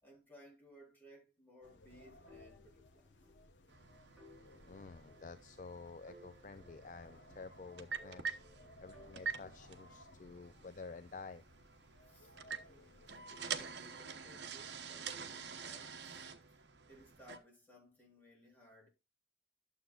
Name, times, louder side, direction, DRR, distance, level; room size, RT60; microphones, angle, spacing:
voice 1, 0.0-3.1 12.1-12.4 12.7-18.9, equal, 10° left, 3.7 m, -61 dB
sound 1, 1.6-13.6, left 1 dB, 85° left, 1.1 m, -62 dB
sound 2, 2.3-3.4 3.7-3.8 4.2-5.7 6.1-7.5 8.0-9.8, equal, 5° right, 6.2 m, -62 dB
sound 3, 3.7-17.4, right 6 dB, 70° right, 0.9 m, -47 dB
voice 2, 4.6-8.2 8.8-11.4, left 4 dB, 45° left, 0.4 m, -51 dB
12.0 x 7.3 x 2.4 m
head